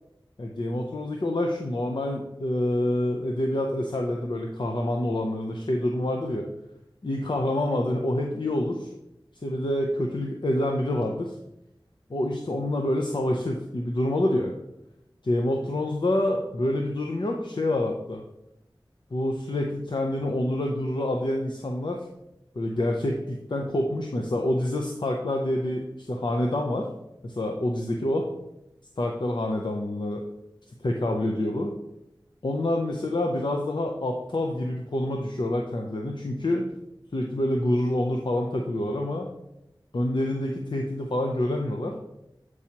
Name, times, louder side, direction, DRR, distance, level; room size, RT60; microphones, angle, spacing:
voice 1, 0.4-6.5 7.0-8.9 9.4-11.3 12.1-14.5 15.2-18.2 19.1-22.1 22.6-26.9 27.2-28.3 29.0-30.2 30.8-31.7 32.4-36.6 37.1-39.3 39.9-41.9, left 1 dB, 65° left, 1 dB, 0.6 m, -27 dB
8.5 x 4.7 x 2.9 m, 0.86 s
wide cardioid pair, 50°, 9 cm